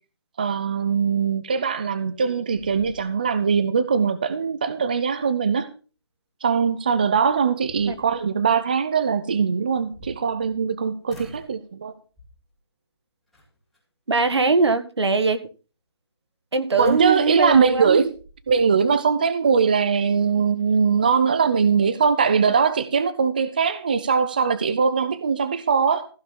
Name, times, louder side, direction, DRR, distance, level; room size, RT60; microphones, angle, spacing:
voice 1, 0.4-5.7 6.4-11.9 16.8-18.1 18.5-26.1, right 6 dB, 20° right, 0.5 m, -21 dB
sound 1, 1.9-2.2 2.5-3.5 3.9-4.0 6.7-6.8 7.4-8.3 9.6-10.7 11.1-11.6 12.1-12.5 13.3-13.8 16.8-18.6, equal, ahead, 2.6 m, -47 dB
voice 2, 14.1-15.4 16.5-18.0, right 4 dB, 85° right, 1.8 m, -21 dB
15.0 x 5.4 x 6.0 m
hypercardioid pair, 175°, 14 cm